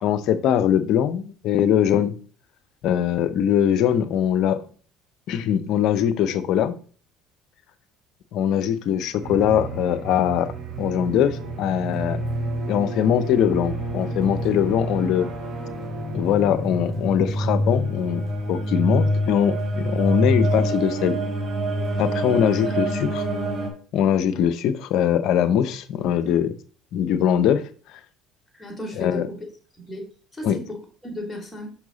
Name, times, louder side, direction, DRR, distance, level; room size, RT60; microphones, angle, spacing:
voice 1, 0.0-2.2 2.8-4.6 5.3-6.7 8.3-10.5 10.8-12.2 12.7-15.3 16.1-21.1 22.0-23.3 23.9-26.6 26.9-27.6 29.0-29.3 30.4-30.6, left 9 dB, 65° left, 12 dB, 0.7 m, -22 dB
sound 1, 9.2-23.7, right 1 dB, 45° right, 2.5 m, -27 dB
voice 2, 28.5-29.4 29.8-30.0 30.3-31.7, left 1 dB, 15° left, 1 dB, 3.3 m, -35 dB
6.0 x 5.6 x 4.0 m, 0.42 s
hypercardioid pair, 70°, 0 cm